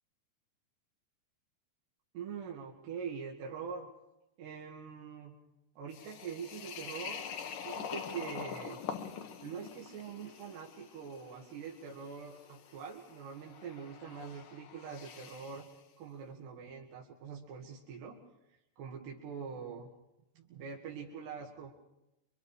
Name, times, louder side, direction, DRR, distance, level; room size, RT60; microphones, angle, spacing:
voice 1, 2.1-3.9 4.4-5.4 5.8-7.3 7.6-8.8 9.4-15.7 16.0-18.2 18.5-19.9 20.4-21.7, right 6 dB, 80° right, -1 dB, 4.3 m, -44 dB
sound 1, 5.9-15.7, left 7 dB, 60° left, 3.0 m, -45 dB
27.5 x 25.5 x 5.0 m, 0.94 s
omnidirectional pair, 4.8 m